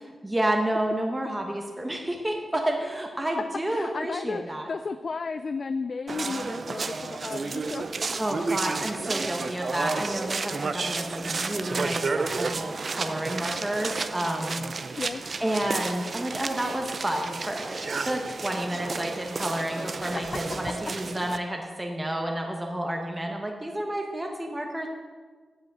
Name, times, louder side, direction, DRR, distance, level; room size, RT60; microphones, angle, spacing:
voice 1, 0.2-4.7 8.2-15.0 15.4-24.9, right 1 dB, 10° right, 1 dB, 1.0 m, -30 dB
voice 2, 3.7-7.9 8.8-9.0 15.0-15.2 20.0-20.9, left 4 dB, 45° left, 11 dB, 0.3 m, -34 dB
sound 1, 6.1-21.4, right 4 dB, 45° right, 0.5 m, -32 dB
8.3 x 7.9 x 7.4 m, 1.5 s
wide cardioid pair, 135°, 0 cm